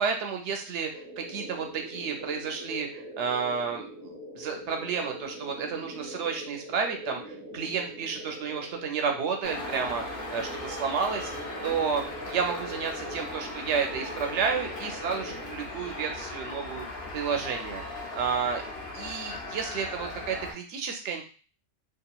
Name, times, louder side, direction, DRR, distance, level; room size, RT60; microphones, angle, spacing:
voice 1, 0.0-11.3 11.6-16.9 17.1-17.8 18.1-18.6 18.9-21.2, right 6 dB, 85° right, 3 dB, 0.9 m, -31 dB
sound 1, 0.9-15.6, equal, 45° right, 0.8 m, -42 dB
sound 2, 9.4-20.5, left 2 dB, 65° left, 1.0 m, -38 dB
2.9 x 2.5 x 2.3 m, 0.38 s
omnidirectional pair, 1.2 m